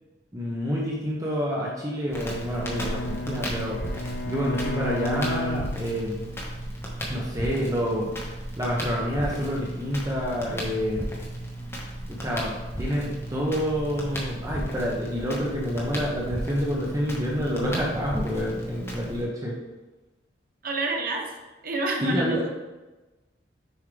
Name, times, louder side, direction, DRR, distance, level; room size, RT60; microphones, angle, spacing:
voice 1, 0.3-3.8 4.2-6.3 7.1-11.2 12.1-19.6 22.0-22.5, equal, 20° right, -4 dB, 0.9 m, -28 dB
Bowed string instrument, 2.1-6.5, left 1 dB, 65° left, 0.6 m, -34 dB
Crackle, 2.1-19.2, right 1 dB, 15° left, 1.3 m, -34 dB
voice 2, 20.6-21.3 21.6-22.5, right 2 dB, 55° right, 1 dB, 1.0 m, -28 dB
7.0 x 5.4 x 3.4 m, 1.1 s
head